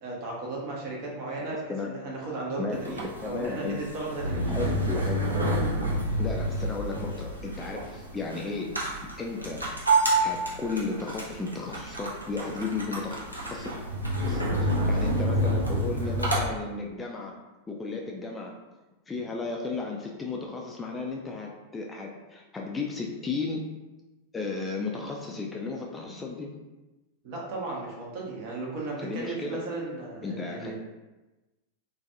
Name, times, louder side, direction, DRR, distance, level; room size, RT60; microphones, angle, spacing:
voice 1, 0.0-4.5 27.2-30.7, right 2 dB, 45° right, -3 dB, 0.7 m, -35 dB
sound 1, 2.7-16.4, right 1 dB, 85° right, 0.5 m, -28 dB
voice 2, 3.2-3.8 4.5-5.3 6.1-8.7 9.2-9.7 10.2-13.2 13.5-13.7 14.3-17.3 17.7-18.5 19.1-23.6 24.3-26.5 29.0-29.6 30.2-30.7, left 4 dB, 15° left, -1 dB, 0.3 m, -34 dB
2.4 x 2.2 x 2.6 m, 1.1 s
figure-of-eight pair, 90°, 0 cm